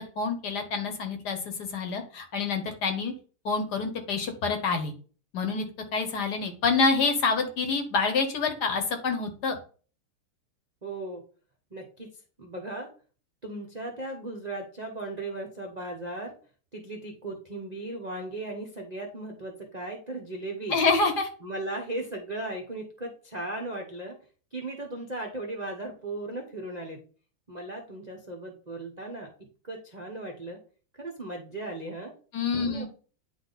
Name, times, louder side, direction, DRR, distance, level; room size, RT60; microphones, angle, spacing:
voice 1, 0.2-3.1 3.4-4.9 5.3-5.6 5.9-9.6 20.7-21.3 32.3-32.9, left 4 dB, 55° left, 6 dB, 1.4 m, -27 dB
voice 2, 10.8-11.2 11.7-12.1 12.4-12.9 13.4-16.4 16.7-20.8 21.4-24.1 24.5-27.0 27.5-29.3 29.6-30.6 31.0-32.1 32.4-32.8, right 2 dB, 40° right, 0 dB, 0.5 m, -37 dB
9.6 x 3.4 x 4.0 m, 0.40 s
omnidirectional pair, 2.3 m